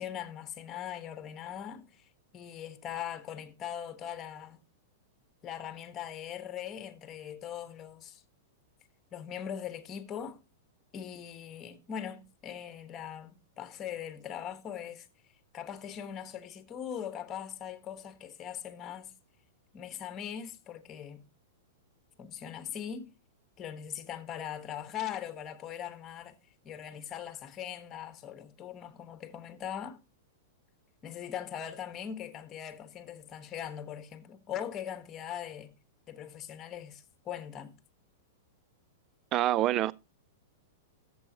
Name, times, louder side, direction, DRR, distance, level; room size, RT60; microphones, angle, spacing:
voice 1, 0.0-2.0 2.3-4.6 5.4-8.2 9.1-10.4 10.9-15.1 15.5-19.1 19.7-21.2 22.2-23.1 23.6-26.4 26.6-30.0 31.0-35.7 36.1-37.7, left 9 dB, 30° left, 1.5 m, -40 dB
voice 2, 39.3-39.9, right 13 dB, 35° right, 0.4 m, -26 dB
14.0 x 7.7 x 3.0 m
hypercardioid pair, 120°, 0 cm